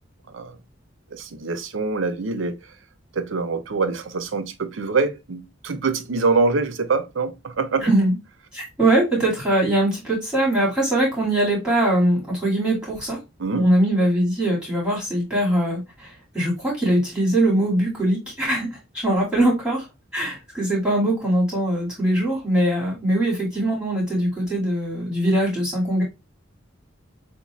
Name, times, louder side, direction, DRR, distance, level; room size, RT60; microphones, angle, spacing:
voice 1, 0.3-0.6 1.1-2.6 3.1-7.9 13.4-13.7, right 4 dB, 85° right, 0.6 m, -24 dB
voice 2, 7.8-8.1 8.5-13.2 13.5-19.9 20.1-26.0, right 1 dB, 5° right, 2.4 m, -22 dB
7.1 x 2.7 x 2.4 m
head